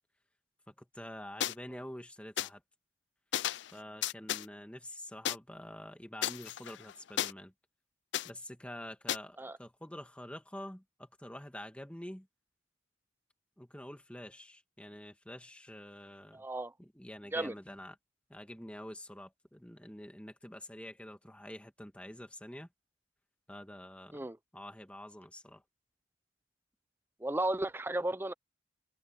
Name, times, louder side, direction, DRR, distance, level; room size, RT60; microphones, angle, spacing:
voice 1, 0.7-2.6 3.7-7.5 8.2-12.3 13.6-16.4 16.8-18.0 18.3-22.7 23.5-24.3 24.5-25.6, left 1 dB, 5° left, 1.9 m, -47 dB
sound 1, 1.4-1.5 2.4-2.5 3.3-3.7 4.0-4.5 5.3-5.4 6.2-7.3 8.1-8.3 9.1-9.2, left 12 dB, 70° left, 0.4 m, -33 dB
voice 2, 16.3-16.7 17.3-17.5 24.1-24.4 27.2-28.3, right 1 dB, 10° right, 0.6 m, -34 dB
head